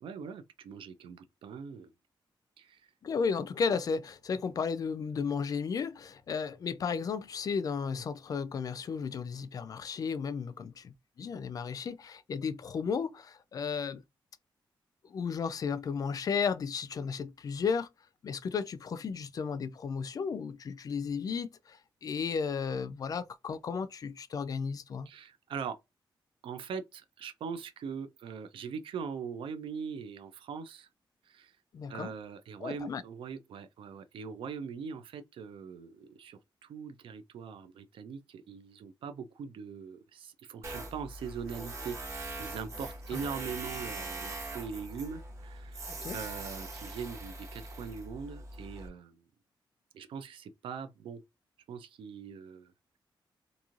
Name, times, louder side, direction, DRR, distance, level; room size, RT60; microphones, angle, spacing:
voice 1, 0.0-1.9 2.6-2.9 25.1-25.8 26.4-30.9 31.3-31.5 31.9-49.2 49.9-51.2 51.7-52.7, right 6 dB, 85° right, 0.5 m, -41 dB
voice 2, 3.0-14.0 15.0-17.9 18.2-25.1 31.7-32.1 32.6-33.0 43.1-43.2 45.9-46.2, left 6 dB, 45° left, 0.3 m, -34 dB
Tools, 40.6-48.9, right 2 dB, 35° right, 0.9 m, -42 dB
3.0 x 2.6 x 2.4 m
wide cardioid pair, 155°, 9 cm